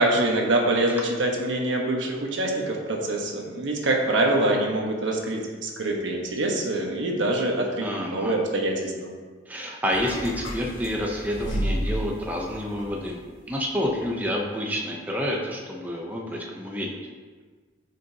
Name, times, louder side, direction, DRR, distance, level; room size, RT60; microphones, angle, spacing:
voice 1, 0.0-9.1, right 2 dB, 75° right, 0 dB, 1.2 m, -25 dB
voice 2, 7.8-8.4 9.5-16.9, equal, 10° right, -1 dB, 0.7 m, -29 dB
sound 1, 9.9-13.4 13.7-14.0, equal, 75° left, 1.6 m, -32 dB
11.5 x 5.2 x 2.8 m, 1.4 s
head